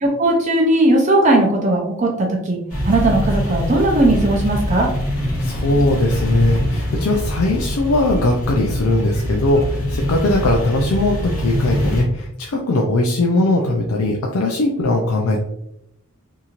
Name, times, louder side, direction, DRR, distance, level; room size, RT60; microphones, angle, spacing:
voice 1, 0.0-2.6 2.8-4.9, right 2 dB, 35° right, 0 dB, 0.5 m, -17 dB
sound 1, 2.7-12.0, equal, 35° left, 1.1 m, -23 dB
voice 2, 5.4-15.4, left 2 dB, 80° left, -1 dB, 0.4 m, -19 dB
2.9 x 2.7 x 2.4 m, 0.79 s
head